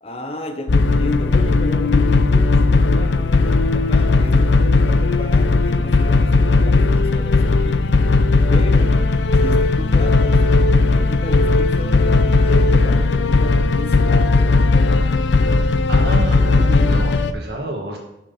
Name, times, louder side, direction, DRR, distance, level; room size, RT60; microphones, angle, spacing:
voice 1, 0.0-7.9 8.5-9.0 9.3-10.4 10.9-14.3, equal, 35° left, 6 dB, 1.0 m, -33 dB
sound 1, 0.7-17.3, left 3 dB, 90° left, 0.6 m, -16 dB
voice 2, 15.9-18.0, right 2 dB, 70° right, 1 dB, 2.0 m, -28 dB
8.4 x 6.2 x 5.7 m, 0.88 s
head